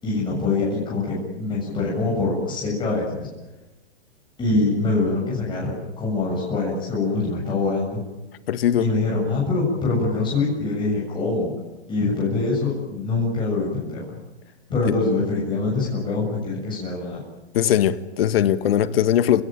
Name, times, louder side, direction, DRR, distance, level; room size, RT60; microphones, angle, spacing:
voice 1, 0.0-3.3 4.4-8.0 8.8-11.5 11.9-14.2 14.7-17.2, left 3 dB, 15° left, 7.5 m, -24 dB
voice 2, 8.5-8.9 17.5-19.4, left 10 dB, 60° left, 1.7 m, -20 dB
30.0 x 17.5 x 9.1 m
hypercardioid pair, 140°, 33 cm